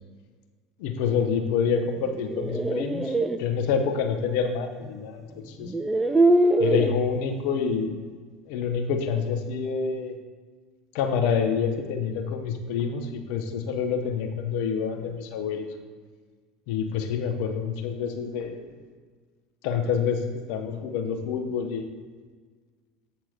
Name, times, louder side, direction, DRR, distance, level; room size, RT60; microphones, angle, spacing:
voice 1, 0.8-5.7 6.6-7.9 8.5-10.1 10.9-15.7 16.7-18.8 19.6-21.8, left 6 dB, 65° left, 5 dB, 0.7 m, -27 dB
sound 1, 2.0-3.4 4.8-4.9 5.6-7.0, right 2 dB, 10° right, 0.4 m, -22 dB
7.7 x 2.9 x 5.0 m, 1.5 s
hypercardioid pair, 75°, 0 cm